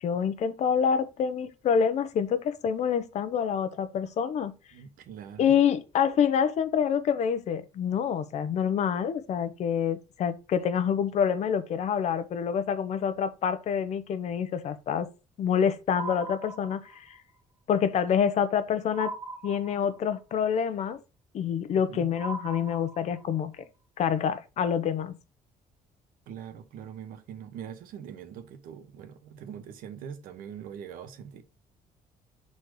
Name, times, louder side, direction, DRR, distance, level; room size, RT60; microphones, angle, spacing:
voice 1, 0.0-4.5 5.4-15.1 15.4-17.2 17.7-19.1 19.4-21.0 21.3-23.6 24.0-25.1, left 7 dB, 50° left, 0.8 m, -27 dB
voice 2, 4.7-5.6 21.9-22.1 26.3-31.4, right 8 dB, 80° right, 1.1 m, -42 dB
sound 1, 15.9-17.2 18.9-20.2 22.2-23.4, right 3 dB, 25° right, 3.2 m, -39 dB
6.3 x 4.2 x 4.7 m
cardioid pair, 155°, 14 cm